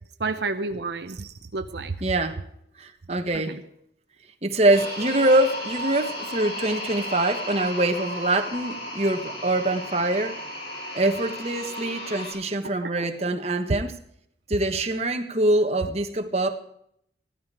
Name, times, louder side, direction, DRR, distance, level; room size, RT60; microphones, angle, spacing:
voice 1, 0.2-1.9 3.5-3.6 12.8-13.1, right 3 dB, 70° right, 0.8 m, -30 dB
voice 2, 2.0-2.4 2.8-3.6 4.4-10.4 10.9-14.0 14.5-16.6, right 2 dB, 35° right, 1.3 m, -24 dB
sound 1, 4.7-12.3, equal, 65° left, 5.9 m, -34 dB
15.5 x 13.0 x 4.8 m
head